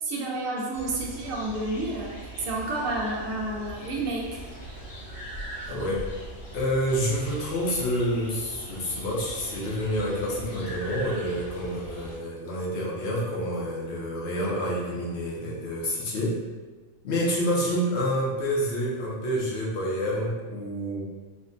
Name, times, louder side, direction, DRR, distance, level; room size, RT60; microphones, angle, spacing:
voice 1, 0.0-4.4, right 2 dB, 75° right, -2 dB, 1.0 m, -30 dB
sound 1, 0.7-12.2, right 1 dB, 75° left, 1.5 m, -41 dB
voice 2, 5.7-6.0 6.5-16.4 17.0-21.1, equal, 60° left, -4 dB, 0.9 m, -28 dB
3.5 x 2.1 x 2.5 m, 1.3 s
omnidirectional pair, 1.4 m